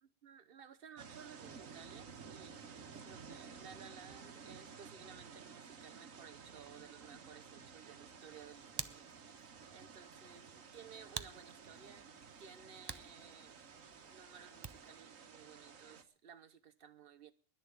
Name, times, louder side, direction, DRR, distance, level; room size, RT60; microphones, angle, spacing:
voice 1, 0.0-9.1 9.7-12.1 12.4-17.3, right 7 dB, 50° right, 1.2 m, -57 dB
sound 1, 1.0-16.0, right 6 dB, 85° right, 1.7 m, -54 dB
Hands, 8.2-15.0, right 4 dB, 35° right, 0.4 m, -51 dB
10.5 x 10.5 x 9.2 m
omnidirectional pair, 1.3 m